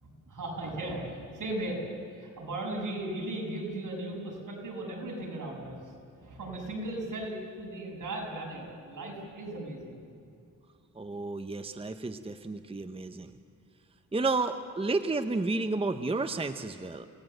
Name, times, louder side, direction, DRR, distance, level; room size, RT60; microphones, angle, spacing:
voice 1, 0.0-1.9 2.2-5.8 6.2-10.1, right 1 dB, 70° right, -1 dB, 6.5 m, -37 dB
voice 2, 10.9-13.3 14.1-17.1, right 3 dB, 15° right, 8 dB, 0.8 m, -31 dB
29.0 x 18.0 x 7.8 m, 2.5 s
wide cardioid pair, 110°, 33 cm